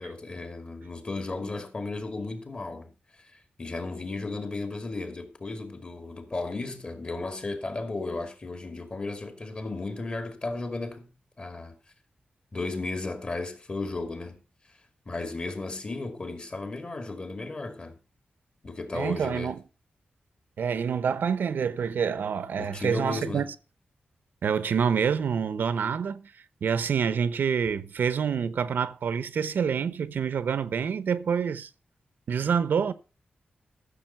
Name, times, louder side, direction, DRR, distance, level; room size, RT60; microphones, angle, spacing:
voice 1, 0.0-2.9 3.6-11.1 11.4-11.7 12.5-14.4 15.1-17.9 18.6-19.5 22.6-23.5, left 3 dB, 35° left, 2.4 m, -34 dB
voice 2, 18.9-19.6 20.6-23.5 24.4-26.3 26.6-31.7 32.3-32.9, right 7 dB, 85° right, 0.9 m, -27 dB
14.0 x 7.1 x 5.7 m
wide cardioid pair, 110°, 3 cm